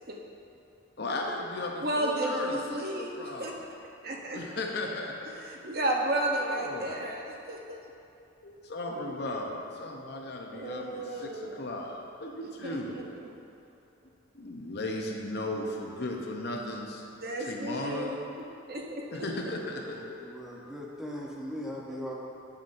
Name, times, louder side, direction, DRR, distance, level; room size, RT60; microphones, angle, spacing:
voice 1, 1.0-3.5 4.3-5.3 6.4-7.0 8.4-13.0 14.3-17.1 17.4-18.1 19.1-20.2 20.6-20.7, left 2 dB, 55° left, 1 dB, 0.7 m, -36 dB
voice 2, 1.8-3.5 4.0-4.4 5.3-7.8 9.0-9.2 10.5-11.5 12.6-13.0 17.2-18.2 18.7-19.3 22.0-22.1, right 1 dB, 50° right, -1 dB, 0.7 m, -33 dB
voice 3, 19.8-22.1, equal, ahead, -4 dB, 0.7 m, -39 dB
7.8 x 7.3 x 2.5 m, 2.7 s
head